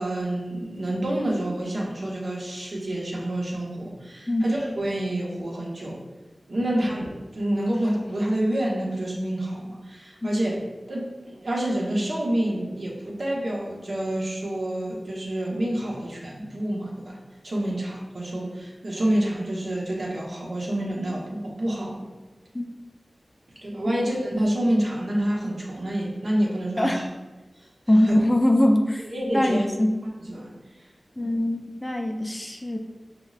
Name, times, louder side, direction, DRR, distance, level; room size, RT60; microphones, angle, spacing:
voice 1, 0.0-6.0 6.5-10.6 10.9-17.2 17.4-22.0 23.6-27.0 28.0-28.2 29.0-29.6 30.2-30.5 31.2-31.3, right 1 dB, 70° right, -4 dB, 0.9 m, -28 dB
voice 2, 27.9-29.1 29.3-29.9 31.2-32.8, left 1 dB, 20° left, 3 dB, 0.4 m, -22 dB
5.9 x 2.1 x 2.4 m, 1.2 s
wide cardioid pair, 60°, 0 cm